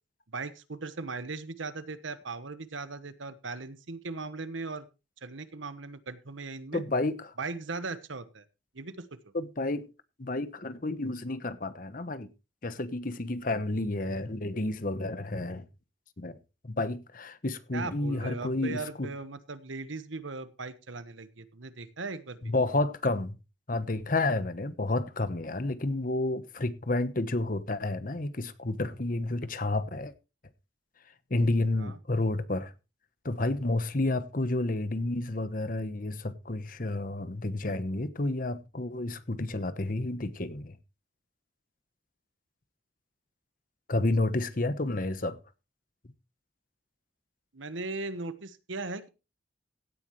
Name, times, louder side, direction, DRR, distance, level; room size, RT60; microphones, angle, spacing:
voice 1, 0.3-4.9 5.2-6.8 7.4-8.4 8.7-9.1 17.7-22.5 31.8-32.0 47.5-49.1, right 3 dB, 85° right, 1.2 m, -38 dB
voice 2, 6.7-7.2 9.3-9.9 10.2-12.3 12.6-15.7 16.2-16.4 16.6-19.1 22.5-23.3 23.7-30.1 31.3-32.7 33.2-40.7 43.9-45.4, left 2 dB, 45° left, 1.0 m, -30 dB
16.5 x 9.3 x 3.1 m
head